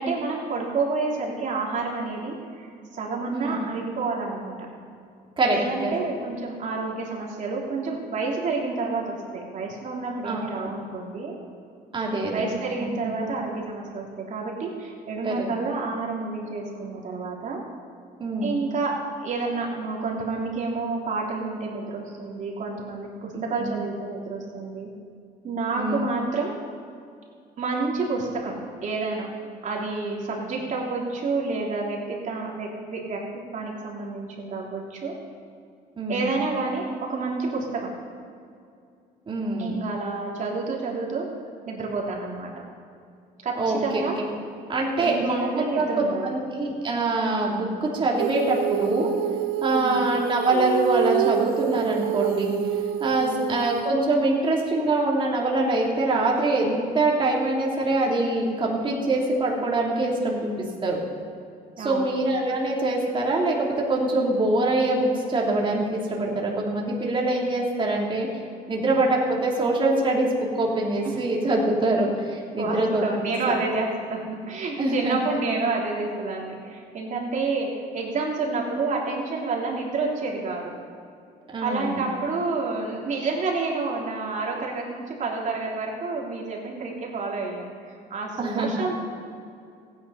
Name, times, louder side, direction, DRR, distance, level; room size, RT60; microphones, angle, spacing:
voice 1, 0.0-4.5 5.4-11.3 12.3-17.6 18.4-18.9 19.2-24.9 25.4-26.5 27.6-29.3 29.6-33.2 33.5-35.1 36.1-37.9 39.6-41.2 41.7-42.5 43.4-44.1 45.0-46.3 49.7-50.1 53.2-53.5 61.8-62.1 71.0-71.2 72.6-80.7 81.6-88.9, right 3 dB, 45° right, -2 dB, 3.2 m, -29 dB
voice 2, 5.4-6.0 10.2-10.5 11.9-12.3 12.8-13.1 15.2-15.5 18.2-18.5 23.3-23.8 25.8-26.0 36.0-36.3 39.3-39.8 43.6-43.8 44.2-44.3 44.7-49.1 49.6-52.5 53.0-60.5 60.8-61.0 61.8-68.3 68.7-70.3 70.5-73.1 74.8-75.2 81.5-82.1 88.4-88.7, right 2 dB, 30° right, -2 dB, 2.8 m, -24 dB
Female singing, 48.2-53.9, right 11 dB, 85° right, 0.4 m, -27 dB
16.0 x 9.6 x 5.7 m, 2.4 s
cardioid pair, 110°, 17 cm